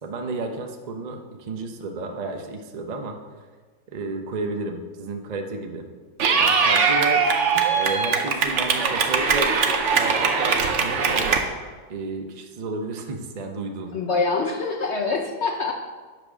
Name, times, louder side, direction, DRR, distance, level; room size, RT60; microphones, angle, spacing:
voice 1, 0.0-3.2 3.9-5.8 6.3-7.3 7.8-9.5 9.9-11.3 11.9-13.9, right 3 dB, 80° right, 3 dB, 0.3 m, -32 dB
Clapping / Cheering, 6.2-11.4, right 5 dB, 55° right, 0.8 m, -21 dB
voice 2, 13.9-15.7, left 4 dB, 80° left, 1 dB, 0.6 m, -25 dB
9.4 x 5.2 x 6.2 m, 1.4 s
omnidirectional pair, 2.1 m